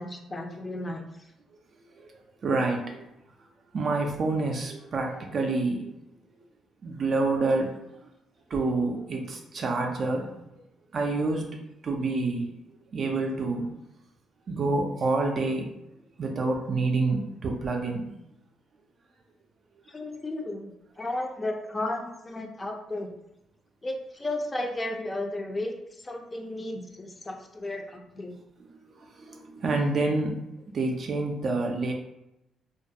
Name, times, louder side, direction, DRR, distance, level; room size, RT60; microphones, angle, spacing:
voice 1, 0.0-1.3 19.9-23.1 23.8-28.4, left 1 dB, 25° left, 3 dB, 0.4 m, -34 dB
voice 2, 2.4-3.1 3.7-5.9 6.8-7.8 8.5-10.3 10.9-12.5 12.9-13.7 14.5-15.7 16.2-18.1 29.2-30.4 30.7-31.9, right 3 dB, 55° right, 2 dB, 0.4 m, -27 dB
2.3 x 2.1 x 2.7 m, 0.87 s
cardioid pair, 90°, 0 cm